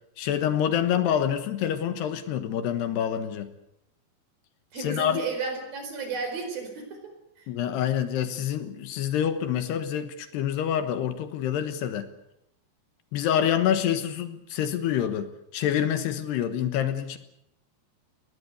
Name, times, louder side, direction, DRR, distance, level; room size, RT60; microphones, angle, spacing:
voice 1, 0.2-3.5 4.8-5.2 7.5-12.1 13.1-17.2, left 9 dB, 75° left, 10 dB, 3.3 m, -27 dB
voice 2, 4.7-7.1 7.4-7.5, right 4 dB, 55° right, 6 dB, 6.3 m, -33 dB
20.5 x 20.5 x 8.2 m, 0.78 s
omnidirectional pair, 5.1 m